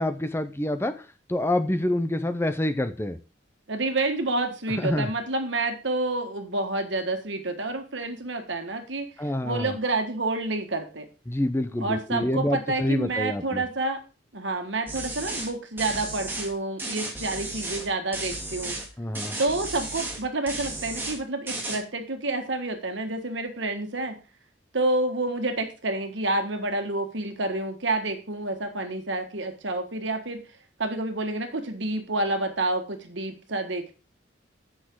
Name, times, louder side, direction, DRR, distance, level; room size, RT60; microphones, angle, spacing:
voice 1, 0.0-3.2 4.8-5.1 9.2-9.7 11.3-13.6 19.0-19.4, left 1 dB, 15° left, 10 dB, 0.6 m, -27 dB
voice 2, 3.7-9.1 9.4-11.0 11.8-14.0 14.3-18.8 19.4-24.2 24.7-30.4 30.8-33.9, right 2 dB, 75° right, 6 dB, 1.6 m, -29 dB
sound 1, 14.9-15.5 15.8-16.5 16.8-17.9 18.1-18.9 19.2-20.2 20.5-21.2 21.5-21.8, right 2 dB, 10° right, 2.0 m, -34 dB
8.3 x 6.4 x 4.6 m, 0.33 s
head